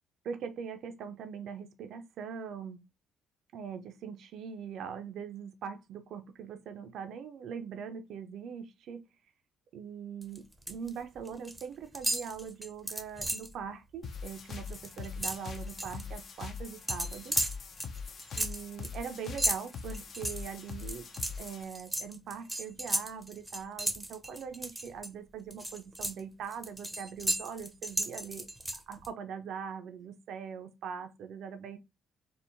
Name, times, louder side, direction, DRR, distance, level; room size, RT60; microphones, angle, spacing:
voice 1, 0.2-2.8 3.5-9.0 9.7-17.4 18.4-21.1 21.4-28.5 28.7-31.8, right 7 dB, 60° right, 0.3 m, -42 dB
sound 1, 10.2-10.9 11.2-11.6 11.9-13.5 13.9-14.1 14.4-16.0 16.9-25.1 25.5-29.1, right 1 dB, 5° right, 0.5 m, -35 dB
sound 2, 14.0-21.6, left 5 dB, 50° left, 0.4 m, -42 dB
3.6 x 2.0 x 2.5 m
figure-of-eight pair, 45°, 0 cm